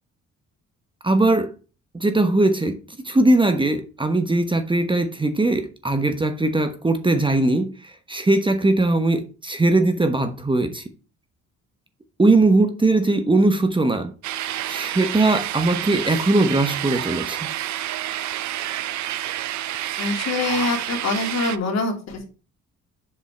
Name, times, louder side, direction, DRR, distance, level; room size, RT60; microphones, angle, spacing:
voice 1, 1.0-1.5 1.9-2.8 3.0-7.7 8.1-10.8 12.2-14.1 14.7-17.5, right 2 dB, 15° right, 1.1 m, -20 dB
sound 1, 14.2-21.6, right 13 dB, 70° right, 0.6 m, -29 dB
voice 2, 20.0-22.2, left 3 dB, 60° left, 2.6 m, -25 dB
7.4 x 5.3 x 4.5 m
cardioid pair, 90°, 30 cm